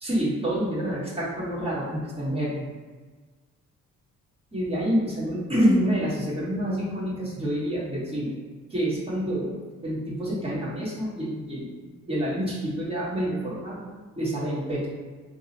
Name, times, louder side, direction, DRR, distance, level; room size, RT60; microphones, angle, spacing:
voice 1, 0.0-2.7 4.5-8.3 8.7-9.6 9.8-11.7 12.1-13.9 14.1-14.9, equal, 20° right, -7 dB, 1.4 m, -27 dB
3.4 x 2.1 x 4.1 m, 1.4 s
cardioid pair, 90°, 30 cm